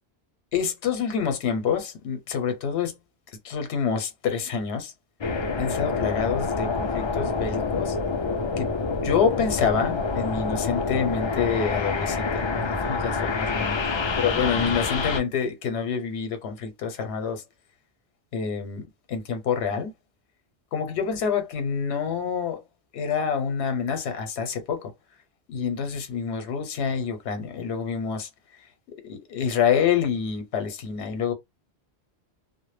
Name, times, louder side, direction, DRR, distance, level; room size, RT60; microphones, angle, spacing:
voice 1, 0.5-2.9 3.4-4.9 5.6-8.0 8.6-8.7 9.0-17.4 18.3-19.9 20.7-22.6 22.9-24.9 25.5-28.3 29.0-31.3, left 6 dB, 85° left, 0.9 m, -27 dB
sound 1, 5.2-15.2, left 4 dB, 50° left, 0.3 m, -27 dB
2.1 x 2.0 x 3.1 m
omnidirectional pair, 1.1 m